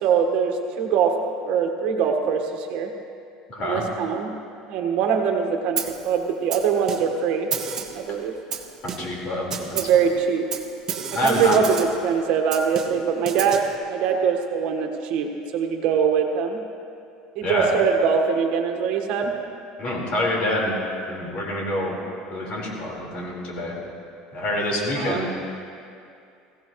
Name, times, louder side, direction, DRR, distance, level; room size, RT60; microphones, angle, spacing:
voice 1, 0.0-1.2 1.4-2.9 3.6-4.3 4.7-5.8 6.0-7.5 7.9-8.3 9.7-10.5 11.1-16.6 17.3-19.3 25.0-25.3, right 6 dB, 60° right, 3 dB, 1.5 m, -22 dB
voice 2, 3.5-3.8 8.8-9.8 11.1-11.6 17.4-17.7 19.8-20.8 21.1-22.0 22.3-23.7 24.3-25.3, left 1 dB, 45° left, -3 dB, 4.5 m, -26 dB
Snare drum, 5.8-6.1 6.5-7.2 7.5-8.1 8.5-9.2 9.5-10.0 10.5-12.0 12.5-13.7, right 6 dB, 30° right, 1.3 m, -31 dB
21.5 x 16.5 x 3.2 m, 2.5 s
supercardioid pair, 130°, 2 cm